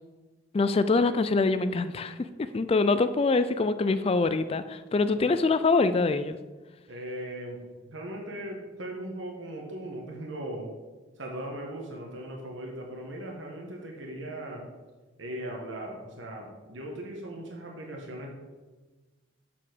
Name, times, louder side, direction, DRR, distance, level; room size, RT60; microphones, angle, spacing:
voice 1, 0.5-6.4, left 3 dB, 30° left, 12 dB, 0.3 m, -24 dB
voice 2, 6.9-7.6 7.9-10.7 11.2-14.7 15.2-18.4, right 1 dB, 70° right, 0 dB, 1.4 m, -38 dB
7.2 x 5.8 x 6.2 m, 1.2 s
head